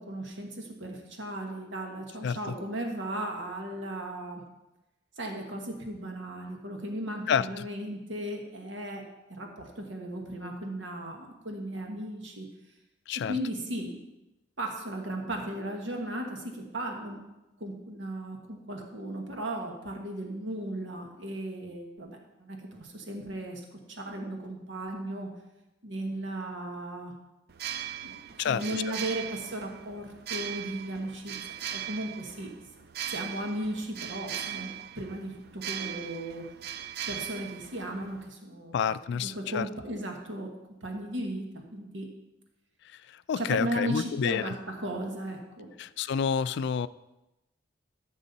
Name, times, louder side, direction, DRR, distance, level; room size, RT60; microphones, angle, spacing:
voice 1, 0.0-4.4 5.2-9.0 9.3-12.5 13.3-14.0 14.6-17.2 17.6-25.3 25.8-27.1 28.0-31.4 31.6-32.5 33.1-34.7 34.9-36.5 37.1-40.5 40.8-42.1 43.4-45.7, right 1 dB, 75° right, 2 dB, 1.5 m, -36 dB
voice 2, 2.2-2.5 7.3-7.7 13.1-13.4 28.4-28.9 38.7-39.7 42.9-44.5 45.8-46.9, left 7 dB, 65° left, 16 dB, 0.3 m, -29 dB
sound 1, 27.5-38.3, right 10 dB, 55° right, 0.5 m, -39 dB
13.0 x 6.2 x 4.2 m, 0.98 s
head